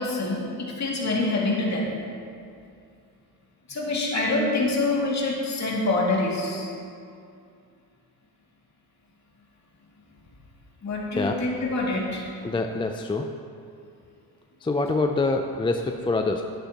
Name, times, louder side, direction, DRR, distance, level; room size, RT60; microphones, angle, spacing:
voice 1, 0.0-1.9 3.7-6.7 10.8-12.3, left 2 dB, 40° left, -3 dB, 2.4 m, -26 dB
voice 2, 12.4-13.3 14.6-16.4, left 3 dB, 15° left, 5 dB, 0.4 m, -25 dB
11.5 x 9.5 x 2.9 m, 2.4 s
cardioid pair, 80°, 41 cm